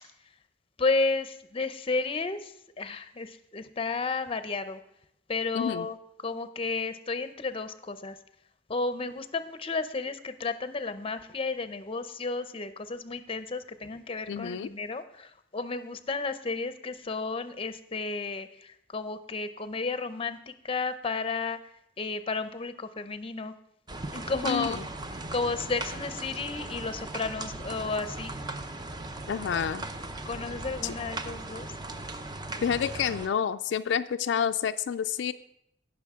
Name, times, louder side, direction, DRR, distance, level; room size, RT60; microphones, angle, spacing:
voice 1, 0.8-4.8 5.3-6.0 6.2-8.2 8.7-21.6 22.0-23.5 24.1-24.8 25.3-28.3 29.5-29.6 30.3-31.7, left 3 dB, 30° left, 11 dB, 0.6 m, -32 dB
voice 2, 5.5-5.9 14.3-14.7 24.4-24.8 29.3-29.8 30.8-30.9 32.6-35.3, left 8 dB, 75° left, 9 dB, 0.3 m, -29 dB
sound 1, 23.9-33.3, right 2 dB, 25° right, 0.6 m, -38 dB
16.5 x 6.2 x 3.6 m, 0.76 s
head